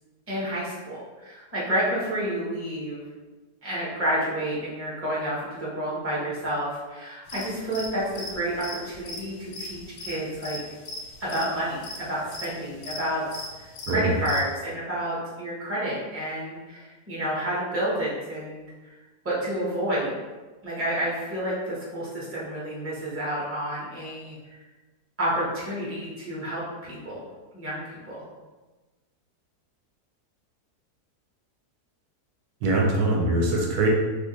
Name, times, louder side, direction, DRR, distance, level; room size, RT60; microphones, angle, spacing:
voice 1, 0.3-3.0 3.6-10.6 11.2-19.0 19.2-20.1 20.6-24.6 25.2-27.3 27.5-28.2, right 1 dB, 10° right, -7 dB, 0.7 m, -30 dB
sound 1, 7.3-14.5, left 2 dB, 90° left, 1.2 m, -38 dB
voice 2, 32.6-33.9, right 2 dB, 75° right, -1 dB, 1.1 m, -22 dB
2.7 x 2.4 x 3.9 m, 1.2 s
omnidirectional pair, 1.7 m